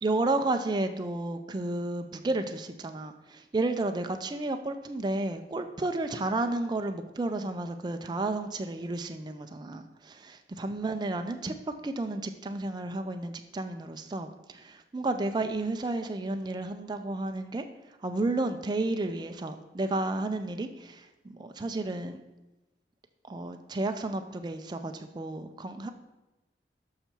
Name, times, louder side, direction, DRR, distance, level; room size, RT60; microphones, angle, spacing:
voice 1, 0.0-11.6 11.8-17.6 18.0-21.0 21.4-22.2 23.3-25.9, right 2 dB, 25° right, 7 dB, 0.4 m, -32 dB
6.8 x 5.6 x 4.4 m, 1.1 s
head